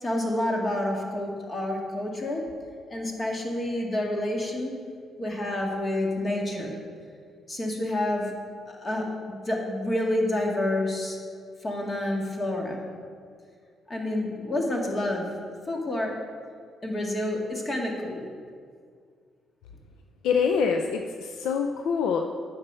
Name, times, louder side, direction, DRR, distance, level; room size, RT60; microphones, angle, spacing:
voice 1, 0.0-2.4 2.9-4.7 5.2-6.8 7.5-8.3 8.7-11.2 11.6-12.8 13.9-16.1 16.8-18.3, left 1 dB, 30° left, 0 dB, 1.9 m, -29 dB
voice 2, 20.2-22.3, left 6 dB, 85° left, 4 dB, 0.5 m, -25 dB
9.7 x 6.5 x 5.5 m, 2.1 s
cardioid pair, 90°, 0 cm